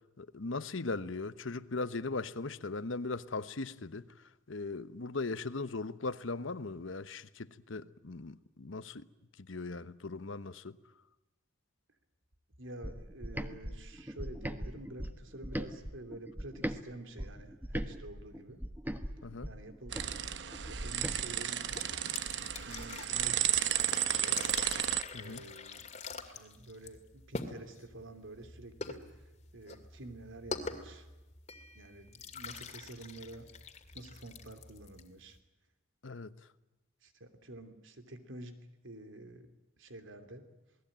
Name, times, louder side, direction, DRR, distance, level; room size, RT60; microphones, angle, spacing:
voice 1, 0.2-4.1 4.5-9.1 9.4-10.8 19.2-19.5 25.1-25.4 36.0-36.3, left 3 dB, 80° left, 1.0 m, -39 dB
voice 2, 12.6-18.6 19.4-20.3 20.7-21.7 22.4-24.4 25.2-25.9 26.3-29.0 29.5-31.1 31.7-33.5 33.9-35.4 37.0-39.5 39.8-40.4, right 1 dB, 85° right, 3.1 m, -49 dB
sound 1, 12.8-16.8 17.2-21.2, equal, 10° right, 1.2 m, -40 dB
sound 2, 19.9-25.0, right 11 dB, 65° right, 0.9 m, -33 dB
sound 3, 21.7-35.4, left 4 dB, 35° left, 2.3 m, -45 dB
28.0 x 19.5 x 8.9 m
head